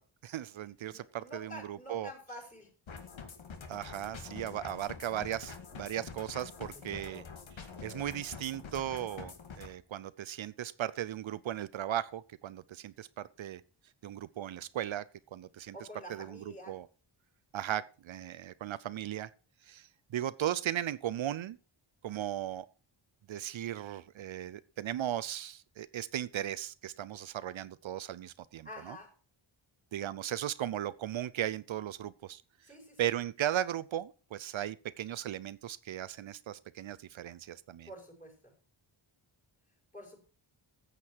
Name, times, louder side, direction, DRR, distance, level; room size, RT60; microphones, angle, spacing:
voice 1, 0.2-2.1 3.7-7.2 7.8-13.6 14.0-15.0 15.3-15.7 16.1-16.4 16.7-16.9 17.5-19.3 19.6-21.6 22.0-22.7 23.3-29.0 29.9-32.4 33.0-37.9, right 11 dB, 75° right, 15 dB, 0.6 m, -37 dB
voice 2, 0.9-2.7 6.9-7.3 15.7-16.8 28.6-29.1 32.6-33.1 37.9-38.5 39.9-40.2, left 1 dB, 15° left, -2 dB, 5.5 m, -48 dB
sound 1, 2.9-9.7, left 5 dB, 70° left, 2.1 m, -46 dB
14.5 x 8.3 x 4.6 m, 0.37 s
wide cardioid pair, 165°, 48 cm